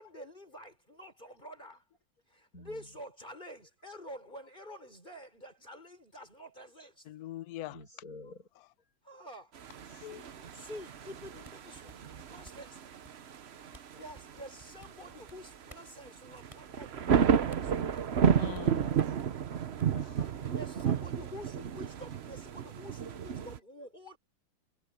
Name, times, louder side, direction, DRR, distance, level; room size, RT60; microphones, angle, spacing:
voice 1, 0.0-1.8 2.3-7.1 9.0-9.5 10.3-12.8 13.6-17.8 20.3-24.2, equal, 20° left, 6.1 m, -48 dB
voice 2, 2.5-2.9 7.6-8.5 8.8-8.9 10.6-10.7 13.6-13.7 14.9-15.0 16.2-16.4 16.9-17.0 18.5-19.6 23.1-23.3, left 2 dB, 40° left, 7.7 m, -53 dB
voice 3, 7.1-7.8 9.9-10.5 18.4-19.0 19.9-20.5, left 14 dB, 65° left, 0.9 m, -43 dB
sound 1, 9.5-23.6, right 7 dB, 80° right, 0.5 m, -32 dB
sound 2, 11.4-12.7 13.0-13.4 13.7-13.8 14.1-15.3 15.7-15.9 16.5-16.6 17.1-17.2 17.5-18.3 18.5-18.6 19.0-19.3 19.8-19.9 20.1-21.1, equal, 15° right, 7.9 m, -55 dB
omnidirectional pair, 2.3 m